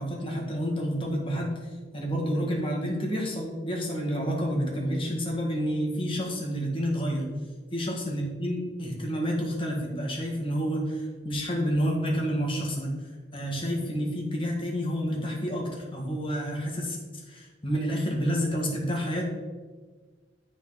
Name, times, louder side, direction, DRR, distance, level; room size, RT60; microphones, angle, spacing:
voice 1, 0.0-7.3 7.7-12.9 13.3-17.0 17.3-19.3, equal, 30° left, -1 dB, 1.6 m, -29 dB
9.8 x 4.1 x 4.0 m, 1.4 s
head